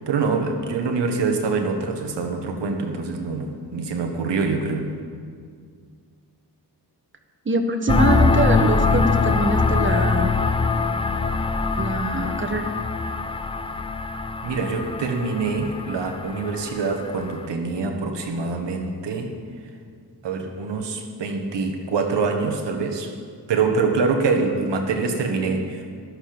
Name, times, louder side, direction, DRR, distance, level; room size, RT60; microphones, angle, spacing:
voice 1, 0.0-4.9 14.4-19.3 20.2-23.1 23.5-25.9, right 4 dB, 85° right, 4 dB, 1.6 m, -25 dB
voice 2, 7.4-10.4 11.8-12.7, right 2 dB, 30° right, 6 dB, 1.1 m, -24 dB
sound 1, 7.9-17.4, left 4 dB, 15° left, 0.3 m, -23 dB
14.0 x 11.5 x 5.2 m, 2.1 s
wide cardioid pair, 125°, 42 cm